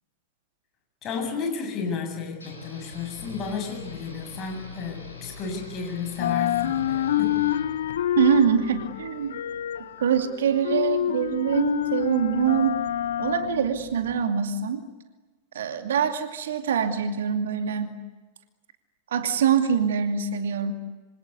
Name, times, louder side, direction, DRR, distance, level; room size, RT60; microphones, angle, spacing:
voice 1, 1.0-7.4, left 5 dB, 30° left, 3 dB, 7.8 m, -32 dB
sound 1, 2.4-7.7, left 4 dB, 80° left, 5.9 m, -43 dB
sound 2, 2.9-5.8 6.1-14.2, left 12 dB, 60° left, 1.0 m, -28 dB
voice 2, 8.2-9.3 10.0-12.8 13.2-14.8 15.5-18.0 19.1-20.7, right 7 dB, 60° right, 7 dB, 2.5 m, -24 dB
26.5 x 26.5 x 8.4 m, 1.3 s
figure-of-eight pair, 90°, 0 cm